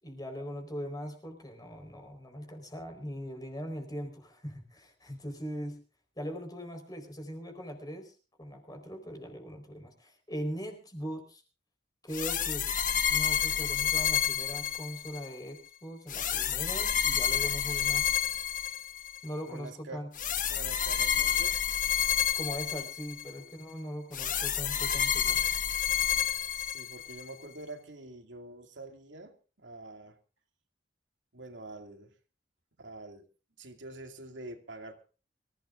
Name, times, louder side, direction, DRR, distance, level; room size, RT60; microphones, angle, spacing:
voice 1, 0.0-5.8 6.2-8.1 8.4-11.4 12.0-12.7 13.1-18.1 19.2-20.1 22.3-25.4, equal, 20° left, 5 dB, 4.5 m, -40 dB
sound 1, 12.1-15.3 16.1-19.2 20.2-23.3 24.1-27.2, left 9 dB, 45° left, 1.1 m, -29 dB
voice 2, 19.4-20.1 20.5-21.8 26.5-30.2 31.3-32.1 32.8-33.2 33.6-35.0, right 2 dB, 85° right, 4 dB, 2.5 m, -46 dB
25.0 x 16.0 x 2.6 m, 0.36 s
head